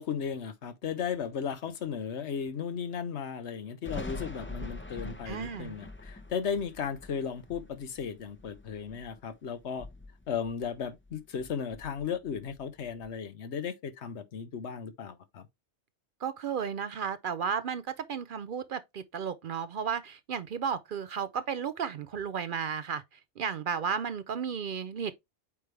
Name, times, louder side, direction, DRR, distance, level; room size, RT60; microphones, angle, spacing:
voice 1, 0.0-9.9 10.3-15.5, left 7 dB, 75° left, 1.2 m, -35 dB
Thunder, 3.8-9.3 9.6-11.1 11.4-13.1, left 2 dB, 10° left, 0.7 m, -44 dB
voice 2, 5.3-5.8 16.2-25.1, right 7 dB, 60° right, 0.6 m, -34 dB
8.4 x 3.4 x 3.3 m
omnidirectional pair, 1.2 m